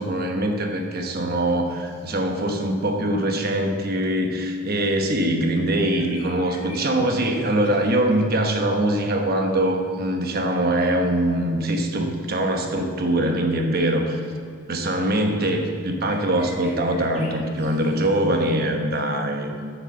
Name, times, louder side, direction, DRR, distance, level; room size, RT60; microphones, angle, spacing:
voice 1, 0.0-14.2 14.7-19.6, right 1 dB, 45° right, 4 dB, 1.0 m, -23 dB
sound 1, 1.7-2.1 4.1-4.2 5.0-5.1 5.6-8.3 9.0-9.4 10.0-10.1 11.0-11.4 12.0-12.3 14.2-14.4 15.5-15.6 15.8-18.4, left 2 dB, 35° left, 2.3 m, -46 dB
7.4 x 6.7 x 7.0 m, 2.3 s
head